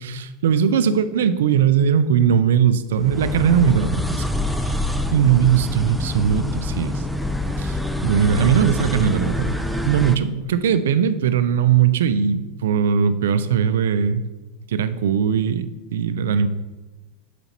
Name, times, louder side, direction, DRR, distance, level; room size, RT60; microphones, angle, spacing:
voice 1, 0.0-4.3 4.7-4.8 5.1-7.0 7.6-9.6 9.8-14.2 14.7-16.5, right 8 dB, 85° right, 12 dB, 0.4 m, -19 dB
sound 1, 2.9-10.2, left 1 dB, ahead, 0.4 m, -25 dB
5.8 x 5.0 x 4.0 m, 1.1 s
supercardioid pair, 120°, 0 cm